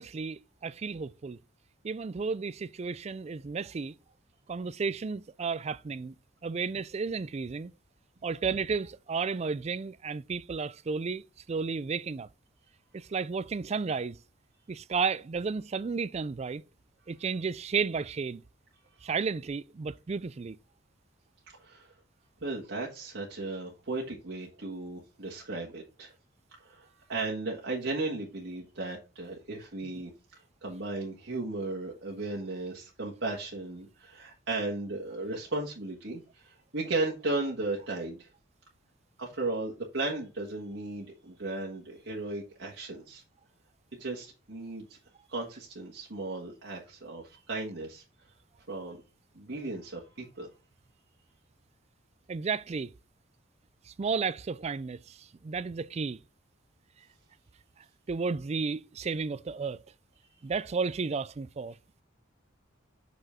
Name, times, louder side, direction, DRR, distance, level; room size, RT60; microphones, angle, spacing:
voice 1, 0.0-1.4 1.8-3.9 4.5-6.1 6.4-7.7 8.2-12.3 12.9-14.2 14.7-16.6 17.1-18.4 19.0-20.6 29.8-30.0 52.3-52.9 53.9-56.2 58.1-59.8 60.4-61.8, right 5 dB, 35° right, 0.3 m, -33 dB
voice 2, 21.6-21.9 22.4-26.1 26.6-30.1 30.6-38.3 39.2-43.2 43.9-45.0 45.3-48.0 48.7-49.0 49.3-50.5, right 2 dB, 65° right, 1.6 m, -35 dB
6.1 x 5.3 x 3.6 m
head